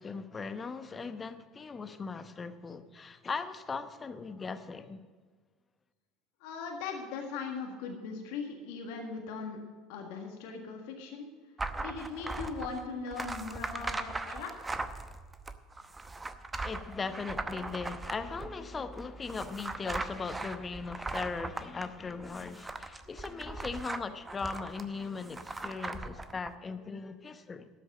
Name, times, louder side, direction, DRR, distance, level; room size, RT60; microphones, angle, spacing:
voice 1, 0.0-5.0 16.6-27.7, left 4 dB, 25° left, 0.9 m, -39 dB
voice 2, 6.4-9.6 9.9-11.3 11.8-14.5, left 5 dB, 65° left, 1.7 m, -39 dB
sound 1, 11.6-26.5, right 3 dB, 15° right, 0.8 m, -39 dB
12.5 x 7.1 x 7.5 m
hypercardioid pair, 70°, 0 cm